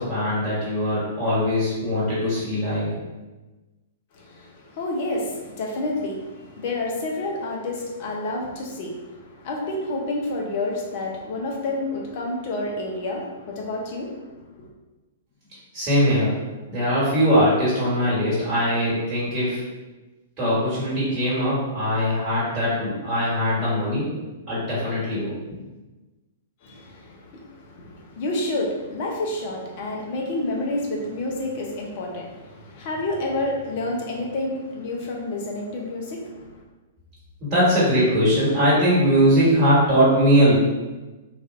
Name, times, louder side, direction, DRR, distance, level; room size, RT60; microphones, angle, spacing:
voice 1, 0.0-2.9 15.7-16.4 16.7-19.6 20.4-24.1 24.5-25.3 37.4-40.6, equal, 25° right, -9 dB, 1.4 m, -21 dB
voice 2, 4.1-14.7 26.6-36.6, left 2 dB, 45° left, -1 dB, 0.6 m, -29 dB
3.2 x 2.5 x 2.5 m, 1.1 s
figure-of-eight pair, 105°, 0 cm